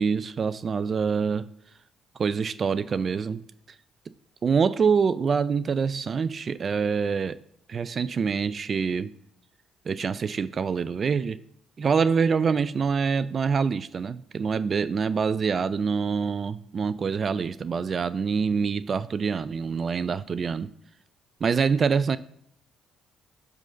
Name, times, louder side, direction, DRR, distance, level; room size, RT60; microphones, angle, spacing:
voice 1, 0.0-1.4 2.2-3.4 4.4-7.4 7.7-9.1 9.9-11.4 11.8-20.7 21.4-22.2, right 5 dB, 45° right, 0.3 m, -25 dB
7.3 x 3.9 x 6.5 m
supercardioid pair, 70°, 0 cm